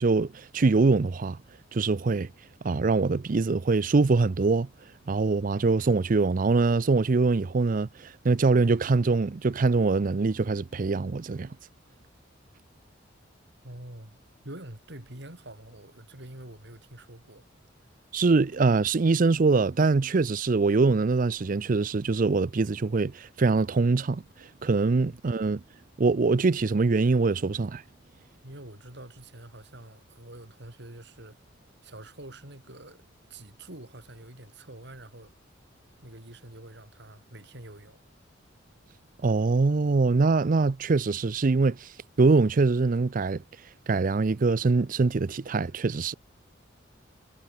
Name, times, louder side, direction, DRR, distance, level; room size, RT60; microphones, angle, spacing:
voice 1, 0.0-1.4 1.7-2.3 2.6-4.7 5.1-11.5 18.1-24.2 24.6-25.6 26.0-27.8 39.2-41.9 42.2-43.4 43.9-46.2, right 3 dB, 45° right, 0.5 m, -23 dB
voice 2, 13.6-14.2 14.4-17.5 25.1-25.2 28.4-31.4 31.8-33.0 33.3-35.3 36.0-38.0, right 1 dB, 60° right, 4.3 m, -46 dB
head